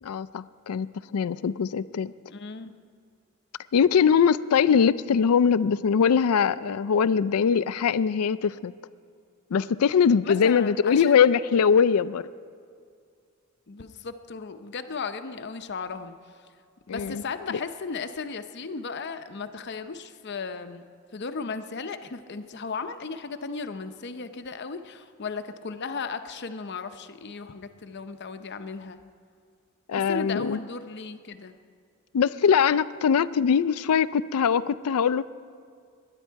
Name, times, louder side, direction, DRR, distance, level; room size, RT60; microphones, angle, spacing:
voice 1, 0.0-0.9 1.1-2.1 3.7-8.7 9.5-12.2 16.9-17.2 29.9-30.6 32.1-35.2, left 7 dB, 90° left, 16 dB, 0.4 m, -22 dB
voice 2, 2.3-2.7 10.2-11.2 13.7-16.5 16.9-20.9 21.1-29.0 29.9-31.6, left 4 dB, 50° left, 9 dB, 0.7 m, -36 dB
21.5 x 10.0 x 4.6 m, 2.2 s
head